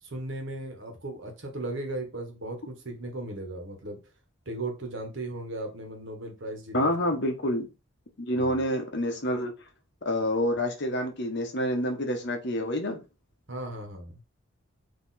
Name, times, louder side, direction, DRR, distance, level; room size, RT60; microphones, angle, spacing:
voice 1, 0.0-4.0 4.5-6.9 8.3-8.6 13.5-14.1, right 2 dB, 60° right, 1.2 m, -36 dB
voice 2, 6.7-7.7 8.2-9.5 10.0-13.0, left 1 dB, 55° left, 0.9 m, -28 dB
4.1 x 2.8 x 4.1 m
head